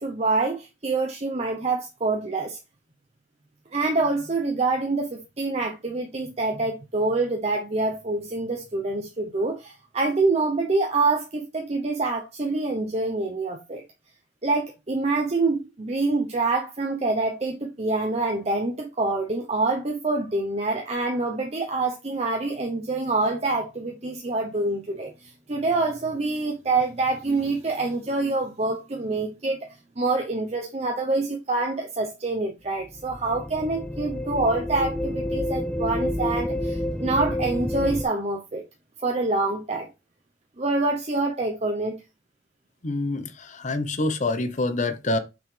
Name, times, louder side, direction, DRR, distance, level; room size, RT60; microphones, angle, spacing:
voice 1, 0.0-2.6 3.7-13.8 14.4-38.6 39.0-39.9 40.6-42.0, right 3 dB, 35° right, 0.7 m, -26 dB
sound 1, 32.8-38.0, left 1 dB, 5° left, 0.4 m, -29 dB
voice 2, 42.8-43.2 43.6-45.2, left 2 dB, 40° left, 0.8 m, -25 dB
5.8 x 5.5 x 3.2 m
head